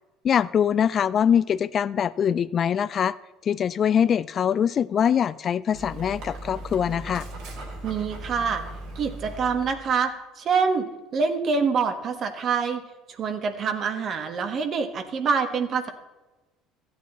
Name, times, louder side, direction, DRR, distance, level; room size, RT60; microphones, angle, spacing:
voice 1, 0.2-3.2 3.4-7.3, left 8 dB, 45° left, 17 dB, 0.3 m, -23 dB
Dog, 5.7-9.9, right 1 dB, 70° right, 2.8 m, -38 dB
voice 2, 7.8-8.6 8.9-10.9 11.1-12.8 13.2-15.9, right 5 dB, 50° right, 7 dB, 1.4 m, -25 dB
14.0 x 9.4 x 4.1 m, 1.1 s
supercardioid pair, 85°, 0 cm